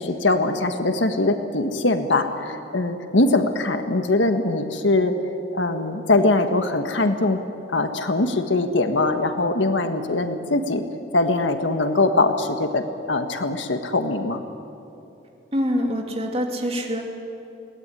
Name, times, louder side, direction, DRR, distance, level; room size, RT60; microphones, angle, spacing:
voice 1, 0.0-5.1 5.5-7.4 7.7-10.8 11.1-12.8 13.1-14.4, left 2 dB, 80° left, 7 dB, 1.7 m, -22 dB
voice 2, 15.5-17.0, equal, 30° right, 2 dB, 2.9 m, -25 dB
22.5 x 18.0 x 9.9 m, 2.8 s
head